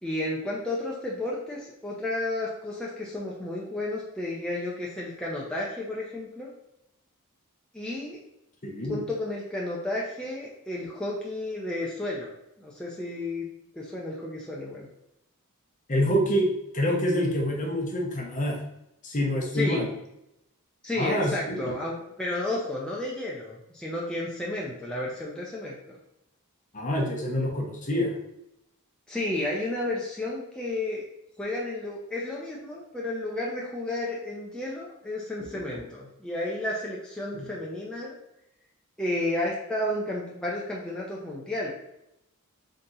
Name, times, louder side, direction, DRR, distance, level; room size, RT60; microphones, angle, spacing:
voice 1, 0.0-6.5 7.7-8.2 8.9-12.3 12.6-13.5 13.7-14.9 19.5-19.9 20.8-26.0 29.1-31.0 31.4-38.1 39.0-41.7, left 1 dB, 5° left, -5 dB, 0.5 m, -32 dB
voice 2, 8.6-9.0 15.9-16.5 16.7-18.6 19.0-19.9 21.0-21.6 26.7-28.1, equal, 35° left, -1 dB, 0.9 m, -26 dB
3.8 x 2.8 x 3.9 m, 0.85 s
head